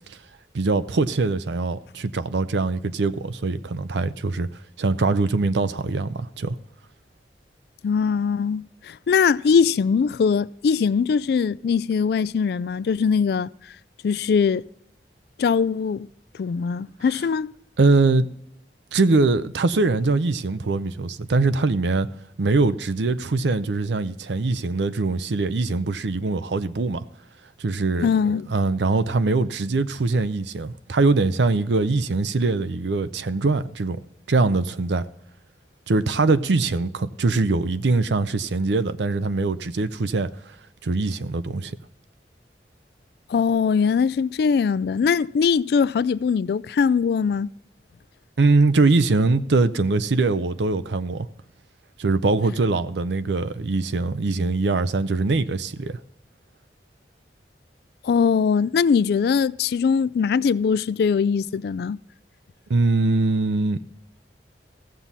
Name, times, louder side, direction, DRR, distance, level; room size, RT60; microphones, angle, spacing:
voice 1, 0.5-4.5 4.8-6.6 17.8-18.3 18.9-22.1 22.4-27.0 27.6-35.0 35.9-40.3 40.8-41.8 48.4-51.3 52.0-56.0 62.7-63.8, right 3 dB, 85° right, 0.6 m, -22 dB
voice 2, 7.8-13.5 14.0-14.6 15.4-16.1 16.4-17.5 28.0-28.5 43.3-47.5 58.0-62.0, left 6 dB, 60° left, 0.3 m, -21 dB
15.5 x 7.3 x 4.1 m
head